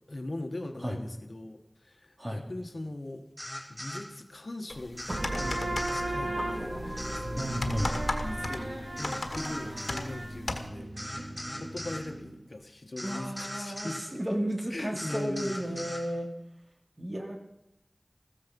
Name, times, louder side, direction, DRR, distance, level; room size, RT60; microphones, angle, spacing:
voice 1, 0.1-3.2 3.7-7.6 8.2-11.3 11.6-14.0 14.7-15.9, left 1 dB, 65° left, 6 dB, 1.5 m, -40 dB
sound 1, 3.4-4.1 5.0-6.1 7.0-8.1 9.0-10.1 11.0-12.1 13.0-14.1 15.0-16.1, equal, ahead, 3.3 m, -39 dB
sound 2, 4.7-10.7, left 2 dB, 85° left, 1.5 m, -38 dB
sound 3, 5.1-12.4, right 1 dB, 65° right, 2.7 m, -35 dB
voice 2, 7.4-7.9 13.0-16.3 17.0-17.4, equal, 30° right, 3 dB, 2.9 m, -33 dB
14.5 x 14.5 x 5.4 m, 0.85 s
wide cardioid pair, 45°, 0 cm